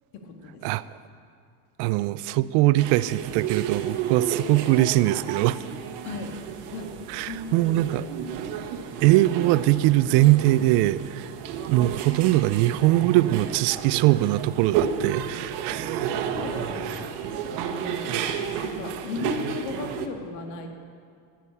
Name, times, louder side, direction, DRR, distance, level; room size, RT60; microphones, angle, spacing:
voice 1, 0.1-0.6 6.0-6.3 6.7-6.9 7.2-8.0 9.4-9.5 16.1-17.1 17.6-18.1 18.6-20.7, left 4 dB, 90° left, 3 dB, 2.0 m, -36 dB
voice 2, 1.8-5.6 7.1-8.1 9.0-11.3 11.6-16.1 18.1-18.2, right 16 dB, 65° right, 16 dB, 0.5 m, -22 dB
sound 1, 2.8-20.1, right 8 dB, 90° right, 1.3 m, -32 dB
11.5 x 10.5 x 8.3 m, 2.3 s
cardioid pair, 155°, 44 cm